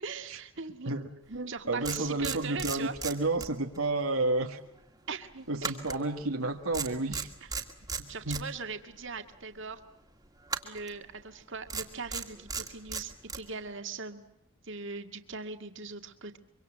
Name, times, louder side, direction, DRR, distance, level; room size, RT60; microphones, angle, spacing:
voice 1, 0.0-0.9 1.5-2.9 5.1-5.8 7.4-7.6 8.1-9.8 10.6-14.2 14.6-16.4, right 4 dB, 55° right, 7 dB, 2.0 m, -40 dB
voice 2, 0.8-4.6 5.5-7.3 8.0-8.4, right 2 dB, 75° right, 3 dB, 1.7 m, -31 dB
sound 1, 1.3-1.4 1.8-3.9 4.1-4.4 5.6-6.5 6.7-8.4 10.5-11.0 11.7-13.4, right 5 dB, 15° right, 2.1 m, -36 dB
25.0 x 24.5 x 7.5 m, 0.81 s
head